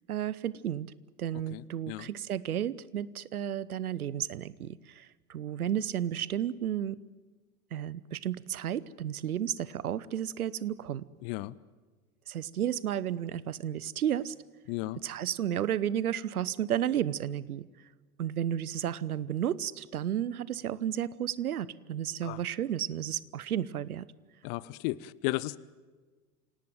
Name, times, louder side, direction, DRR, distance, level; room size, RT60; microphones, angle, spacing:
voice 1, 0.1-0.9 1.2-7.0 7.7-11.1 12.3-14.3 15.0-17.7 18.2-24.1, right 10 dB, 70° right, 20 dB, 0.9 m, -32 dB
voice 2, 14.7-15.0 22.3-22.4 24.4-25.0 25.2-25.6, left 20 dB, 35° left, 22 dB, 0.7 m, -33 dB
27.0 x 18.0 x 9.2 m, 1.4 s
figure-of-eight pair, 85°, 46 cm